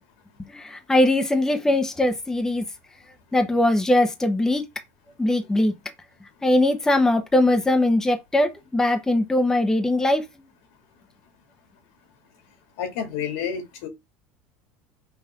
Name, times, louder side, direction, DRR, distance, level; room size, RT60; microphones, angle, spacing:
voice 1, 0.5-2.6 3.3-4.6 5.2-5.7 6.4-10.2, left 1 dB, 5° left, 0.9 m, -21 dB
voice 2, 12.8-13.9, left 7 dB, 80° left, 2.4 m, -29 dB
5.7 x 3.3 x 5.7 m
cardioid pair, 150°, 7 cm